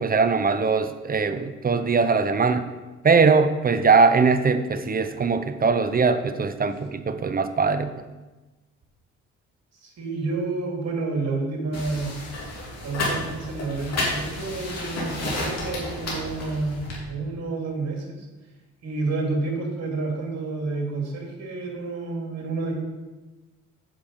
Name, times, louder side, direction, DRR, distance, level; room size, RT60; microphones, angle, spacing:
voice 1, 0.0-2.7 3.0-7.9, right 4 dB, 30° right, 10 dB, 0.7 m, -21 dB
voice 2, 9.7-12.1 12.8-18.2 18.8-22.7, right 3 dB, 55° right, 0 dB, 2.8 m, -29 dB
sound 1, 11.7-17.0, left 2 dB, 55° left, 3.0 m, -31 dB
7.6 x 6.9 x 5.3 m, 1.2 s
cardioid pair, 90°, 30 cm